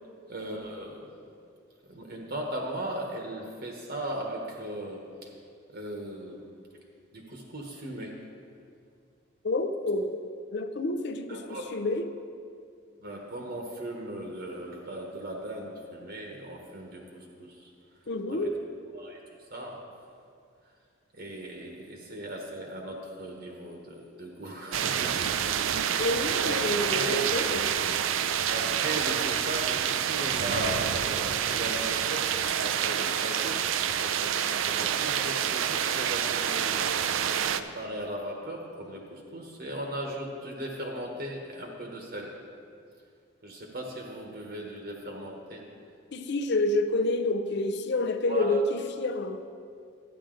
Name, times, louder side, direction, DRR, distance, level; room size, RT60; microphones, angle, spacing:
voice 1, 0.3-1.0 1.9-5.3 5.7-6.4 7.1-8.2 11.3-11.6 13.0-17.7 18.3-18.5 18.9-19.8 21.1-27.3 28.4-37.1 37.6-42.4 43.4-45.6 48.3-48.6, right 1 dB, 50° right, 1.1 m, -38 dB
voice 2, 9.4-10.2 10.5-12.1 18.1-18.6 26.0-27.8 46.1-49.4, left 2 dB, 55° left, 0.5 m, -28 dB
sound 1, 24.7-37.6, right 8 dB, 70° right, 0.4 m, -28 dB
12.0 x 9.5 x 3.8 m
head